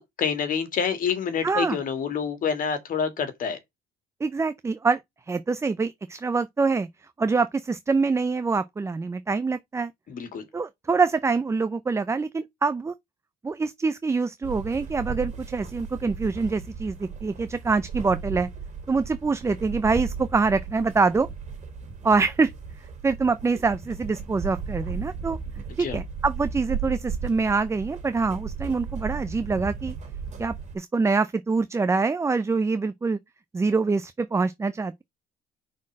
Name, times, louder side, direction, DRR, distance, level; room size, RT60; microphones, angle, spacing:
voice 1, 0.2-3.6 10.1-10.4 25.8-26.0, left 6 dB, 55° left, 2.1 m, -27 dB
voice 2, 1.4-1.8 4.2-5.0 5.3-6.9 7.2-9.9 10.5-12.9 13.4-18.5 18.9-21.3 22.0-22.5 23.0-25.4 25.8-29.9 30.4-33.2 33.5-35.0, right 4 dB, 15° right, 0.5 m, -25 dB
sound 1, 14.4-30.8, right 6 dB, 45° right, 2.4 m, -35 dB
5.5 x 4.3 x 6.1 m
cardioid pair, 110°, 17 cm